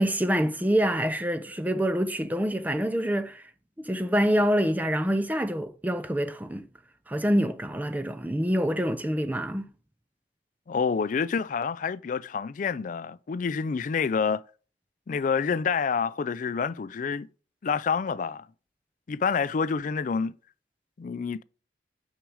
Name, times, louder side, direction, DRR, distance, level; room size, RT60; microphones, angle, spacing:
voice 1, 0.0-3.4 3.8-6.7 7.1-9.7, equal, 10° right, 0.5 m, -26 dB
voice 2, 10.7-14.4 15.1-17.3 17.6-18.5 19.1-20.4 21.0-21.4, left 5 dB, 45° left, 0.3 m, -28 dB
6.2 x 4.9 x 6.3 m
head